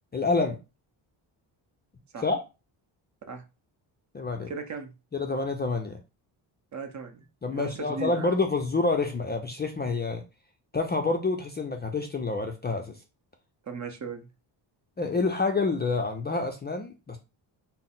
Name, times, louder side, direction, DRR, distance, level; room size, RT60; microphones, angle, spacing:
voice 1, 0.1-0.6 2.2-2.4 4.1-4.5 5.1-6.0 7.4-10.2 10.7-13.0 15.0-17.2, left 3 dB, 25° left, 3 dB, 0.4 m, -28 dB
voice 2, 4.5-4.9 6.7-8.3 13.6-14.3, right 4 dB, 35° right, 7 dB, 0.7 m, -37 dB
3.9 x 2.0 x 3.8 m, 0.29 s
cardioid pair, 100°, 48 cm